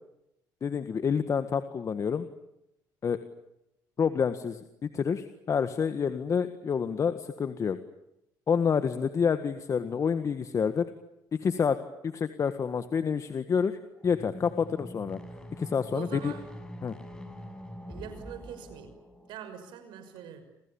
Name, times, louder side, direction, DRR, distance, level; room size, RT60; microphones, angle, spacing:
voice 1, 0.6-2.3 3.0-3.2 4.0-7.8 8.5-10.9 11.3-11.8 12.0-13.8 14.0-15.2 15.6-16.3 16.8-16.9, left 6 dB, 40° left, 10 dB, 1.7 m, -28 dB
sound 1, 13.9-19.6, equal, 10° left, 5.5 m, -44 dB
voice 2, 15.9-16.5 17.9-18.9 19.3-20.4, right 9 dB, 75° right, 9 dB, 6.1 m, -43 dB
29.0 x 28.5 x 7.2 m, 0.83 s
cardioid pair, 90°, 8 cm